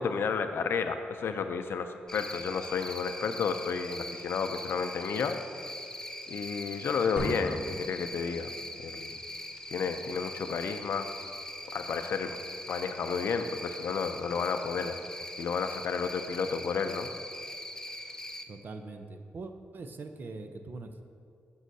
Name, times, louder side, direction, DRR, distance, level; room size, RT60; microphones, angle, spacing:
voice 1, 0.0-5.4 6.3-8.5 8.8-9.1 9.7-11.1 11.7-12.4 12.7-15.0 15.4-17.1, left 5 dB, 75° left, 8 dB, 0.5 m, -31 dB
Cricket, 2.1-18.4, left 1 dB, 15° left, 0.5 m, -42 dB
sound 1, 7.2-8.8, equal, 30° right, 1.5 m, -38 dB
voice 2, 18.5-21.0, right 3 dB, 55° right, 7 dB, 0.6 m, -42 dB
12.0 x 5.5 x 2.7 m, 2.4 s
cardioid pair, 90°, 4 cm